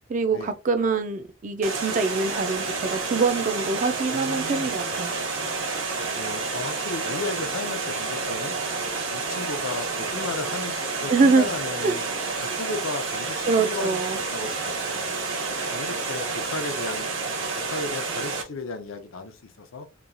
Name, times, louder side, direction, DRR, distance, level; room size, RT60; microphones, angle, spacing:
voice 1, 0.1-5.2 11.1-11.5 11.8-11.9 13.5-14.2, right 4 dB, 40° right, 0.3 m, -24 dB
Water, 1.6-18.4, right 4 dB, 75° right, 1.0 m, -29 dB
voice 2, 4.1-4.7 6.1-8.6 9.1-12.1 12.4-14.0 14.3-15.2 15.7-17.1 17.7-19.9, left 3 dB, 85° left, 0.6 m, -35 dB
3.0 x 2.3 x 2.5 m
head